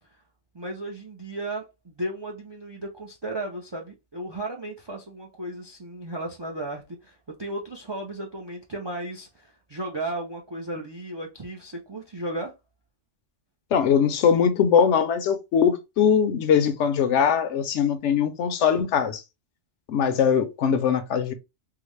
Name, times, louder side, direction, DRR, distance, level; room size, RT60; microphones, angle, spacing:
voice 1, 0.5-12.5, right 1 dB, 40° right, 0.4 m, -35 dB
voice 2, 13.7-19.2 19.9-21.3, left 7 dB, 75° left, 0.9 m, -21 dB
3.8 x 2.0 x 3.1 m
omnidirectional pair, 1.2 m